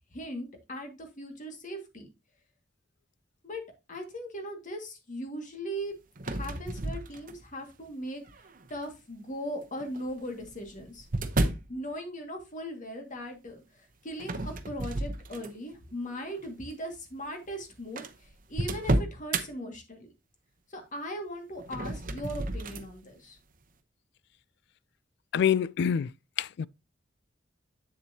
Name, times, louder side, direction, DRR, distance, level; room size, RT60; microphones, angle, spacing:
voice 1, 0.1-2.1 3.4-3.6 3.9-5.9 6.3-8.2 8.7-11.1 11.7-20.1 20.7-23.4, equal, 45° left, 2.0 m, -39 dB
sound 1, 6.2-7.6 8.3-8.7 9.8-11.7 14.2-15.8 16.2-16.5 17.2-17.3 17.5-17.6 18.0-19.5 21.6-22.9, right 2 dB, 45° right, 0.9 m, -32 dB
voice 2, 25.3-26.1 26.4-26.7, left 8 dB, 60° left, 0.3 m, -26 dB
8.2 x 7.2 x 2.8 m
head